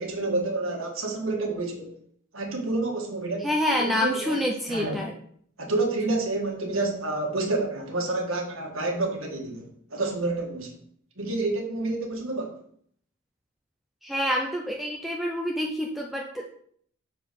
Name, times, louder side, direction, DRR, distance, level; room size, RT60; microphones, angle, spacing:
voice 1, 0.0-1.9 2.3-3.5 3.8-4.4 4.7-5.0 5.6-10.7 11.2-12.5, right 2 dB, 75° right, 1 dB, 1.7 m, -29 dB
voice 2, 3.4-5.1 14.0-16.4, left 1 dB, ahead, 0 dB, 0.6 m, -27 dB
6.8 x 4.8 x 5.2 m, 0.63 s
head